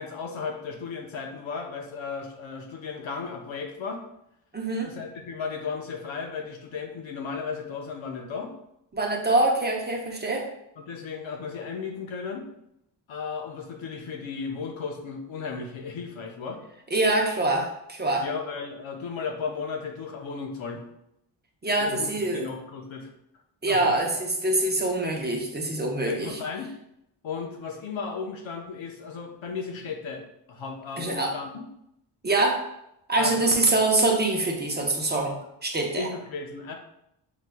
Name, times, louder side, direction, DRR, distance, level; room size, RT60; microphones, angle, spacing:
voice 1, 0.0-4.0 4.8-8.5 10.8-12.5 13.1-16.6 18.2-20.8 21.8-23.1 23.7-24.0 26.1-26.7 27.2-30.2 30.5-31.6 33.2-33.8 35.9-36.7, left 5 dB, 85° left, 2 dB, 0.8 m, -35 dB
voice 2, 4.5-4.9 8.9-10.5 16.9-18.3 21.6-22.4 23.6-26.4 31.0-31.3 32.2-32.7 33.1-35.4 35.6-36.1, right 2 dB, 20° right, 1 dB, 0.6 m, -24 dB
5.9 x 3.1 x 2.2 m, 0.81 s
wide cardioid pair, 120°, 46 cm